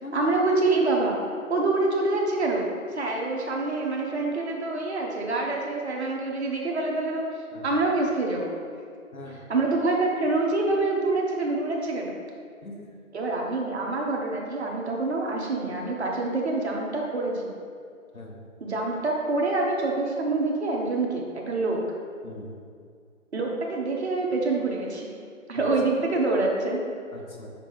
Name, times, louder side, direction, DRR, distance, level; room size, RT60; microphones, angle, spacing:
voice 1, 0.1-1.2 1.5-2.6 2.9-7.2 7.6-8.5 9.5-12.1 13.1-17.4 18.6-21.8 23.3-25.1 25.5-26.8, right 2 dB, 50° right, -1 dB, 1.1 m, -26 dB
voice 2, 9.1-9.4 12.6-12.9 18.1-18.4 22.2-22.5 25.5-25.6 27.1-27.5, left 1 dB, 85° left, 0 dB, 1.2 m, -41 dB
6.3 x 3.9 x 4.0 m, 2.2 s
figure-of-eight pair, 150°, 41 cm